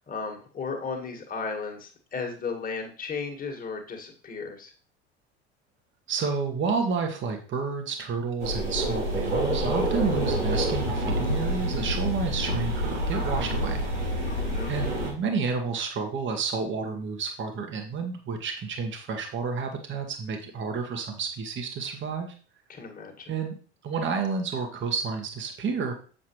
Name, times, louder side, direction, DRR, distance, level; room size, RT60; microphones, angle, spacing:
voice 1, 0.0-4.7 14.3-14.7 22.7-23.3, left 4 dB, 25° left, 2 dB, 1.8 m, -35 dB
voice 2, 6.1-13.8 14.7-22.3 23.3-23.5 23.8-25.9, right 5 dB, 35° right, 4 dB, 1.5 m, -30 dB
sound 1, 8.4-15.1, equal, 90° right, 2.3 m, -27 dB
7.3 x 6.7 x 3.1 m, 0.40 s
figure-of-eight pair, 70°, 34 cm